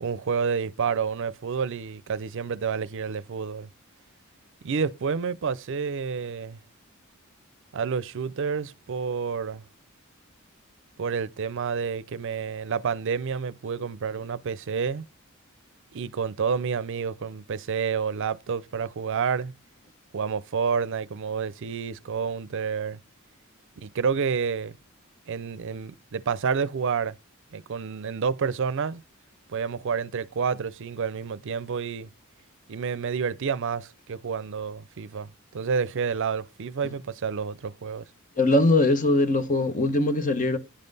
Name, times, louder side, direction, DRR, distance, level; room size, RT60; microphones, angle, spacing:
voice 1, 0.0-3.7 4.6-6.6 7.7-9.6 11.0-15.0 15.9-19.5 20.1-23.0 23.8-24.8 25.3-27.2 27.5-29.0 29.5-32.1 32.7-38.1, right 6 dB, 60° right, 0.5 m, -29 dB
voice 2, 38.4-40.6, left 2 dB, 40° left, 0.9 m, -21 dB
10.0 x 5.5 x 4.0 m
head